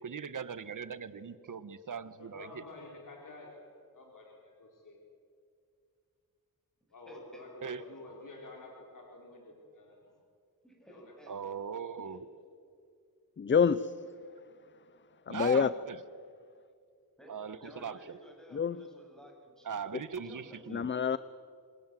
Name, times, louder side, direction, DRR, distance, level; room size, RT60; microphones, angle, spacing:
voice 1, 0.0-2.6 7.6-7.9 11.3-12.2 15.3-16.0 17.3-18.2 19.6-20.9, right 6 dB, 60° right, 14 dB, 1.3 m, -40 dB
voice 2, 2.2-5.0 6.9-10.2 10.9-11.7, left 2 dB, 60° left, -1 dB, 4.3 m, -50 dB
voice 3, 7.0-7.7 10.6-11.5 12.0-12.2 17.2-17.3 17.6-19.8 20.2-20.9, equal, ahead, 0 dB, 7.9 m, -54 dB
voice 4, 13.4-13.9 15.3-15.7 18.5-18.8 20.7-21.2, left 6 dB, 30° left, 16 dB, 0.6 m, -27 dB
26.5 x 26.0 x 7.6 m, 2.3 s
wide cardioid pair, 135°, 36 cm